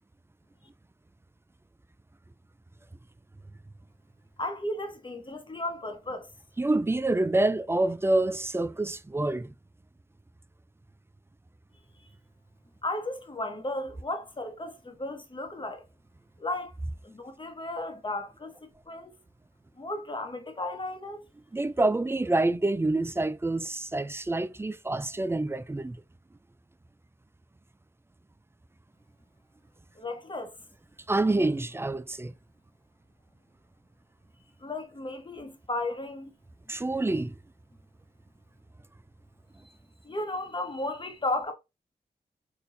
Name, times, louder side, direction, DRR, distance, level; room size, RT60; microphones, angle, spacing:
voice 1, 4.4-6.3 12.8-15.8 16.4-16.7 17.0-19.1 19.8-21.2 30.0-30.6 34.6-36.3 40.0-41.5, left 2 dB, 30° left, 1.1 m, -34 dB
voice 2, 6.6-9.5 21.5-26.0 31.1-32.3 36.7-37.4, right 2 dB, 15° right, 0.3 m, -27 dB
3.8 x 2.6 x 2.6 m
cardioid pair, 40°, 17 cm